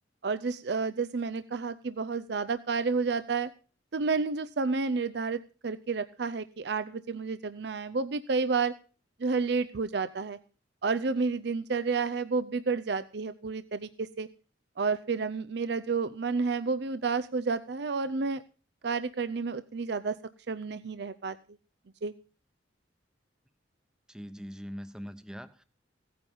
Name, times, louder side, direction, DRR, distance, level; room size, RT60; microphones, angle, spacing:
voice 1, 0.2-3.5 3.9-8.7 9.2-10.4 10.8-14.3 14.8-18.4 18.8-20.2 20.5-21.4 22.0-22.1, right 4 dB, 60° right, 13 dB, 0.5 m, -30 dB
voice 2, 24.1-25.6, equal, 5° right, 11 dB, 0.9 m, -42 dB
16.5 x 9.5 x 5.4 m, 0.39 s
head